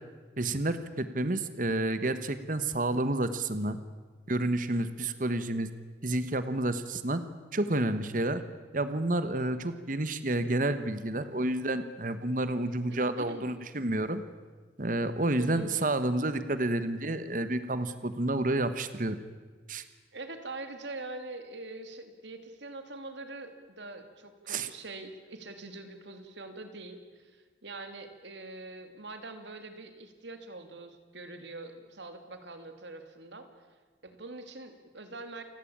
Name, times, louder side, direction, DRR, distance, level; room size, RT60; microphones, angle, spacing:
voice 1, 0.4-3.8 4.3-5.7 6.0-7.2 7.5-8.4 8.7-14.2 14.8-19.2 19.7-19.8 24.5-24.7, right 2 dB, 45° right, 12 dB, 1.2 m, -30 dB
voice 2, 12.9-13.5 15.4-15.7 20.1-33.5 34.0-35.4, right 2 dB, 75° right, 7 dB, 2.8 m, -44 dB
29.0 x 16.5 x 8.7 m, 1.4 s
head